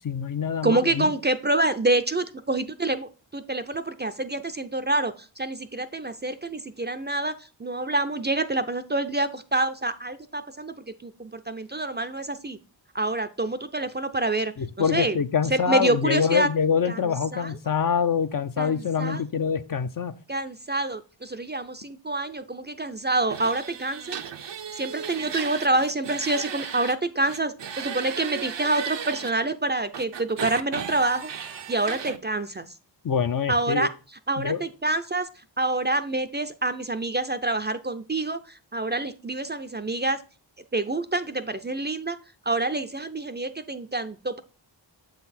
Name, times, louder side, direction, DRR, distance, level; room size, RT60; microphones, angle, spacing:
voice 1, 0.0-1.1 14.6-20.1 33.0-33.9 34.4-34.6, left 6 dB, 50° left, 11 dB, 0.5 m, -25 dB
voice 2, 0.6-7.3 7.6-10.7 11.0-12.6 12.9-14.5 14.9-15.2 15.5-16.5 16.9-17.0 17.3-17.5 18.6-19.2 20.3-24.2 24.7-31.3 31.7-32.7 33.5-33.9 34.3-35.3 35.6-40.2 40.7-42.2 42.5-44.4, right 2 dB, 25° right, 10 dB, 0.4 m, -27 dB
sound 1, 23.3-27.0 27.2-29.3 29.9-32.2, right 7 dB, 70° right, 0.7 m, -35 dB
7.1 x 4.0 x 4.2 m, 0.35 s
cardioid pair, 50°, 45 cm